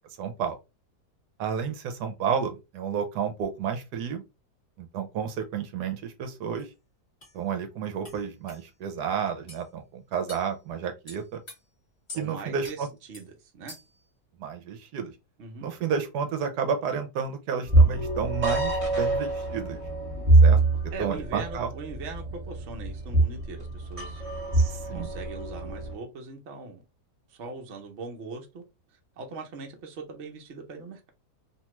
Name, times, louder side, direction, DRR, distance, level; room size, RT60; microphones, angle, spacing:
voice 1, 0.2-0.6 1.4-4.2 4.8-6.7 7.3-11.4 12.2-12.9 14.4-15.1 15.6-19.8 20.4-20.6 21.0-21.7 24.5-25.1, right 7 dB, 80° right, 1.1 m, -31 dB
sound 1, 6.6-6.7 7.2-7.3 8.0-8.2 8.5-8.6 9.5-9.6 10.3-10.5 11.1-11.6 12.1-12.3 12.6-12.8 13.1-13.3 13.7-14.0, left 2 dB, 25° left, 1.3 m, -44 dB
voice 2, 12.1-13.7 15.4-15.7 20.9-24.2 24.9-26.8 27.3-28.6 29.2-31.1, right 4 dB, 55° right, 0.9 m, -40 dB
sound 2, 17.7-25.9, right 2 dB, 25° right, 1.1 m, -24 dB
2.8 x 2.3 x 2.9 m
omnidirectional pair, 1.7 m